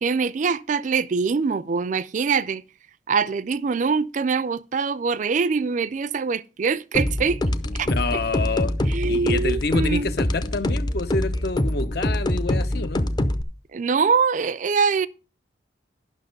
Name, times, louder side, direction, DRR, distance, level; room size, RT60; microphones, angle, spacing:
voice 1, 0.0-2.6 3.1-7.4 7.7-8.2 8.8-10.1 13.7-15.1, right 5 dB, 40° right, 0.4 m, -23 dB
sound 1, 6.9-13.4, left 1 dB, 25° left, 0.6 m, -25 dB
voice 2, 7.8-8.7 9.1-13.1, left 3 dB, 60° left, 0.7 m, -28 dB
11.0 x 6.1 x 5.2 m
head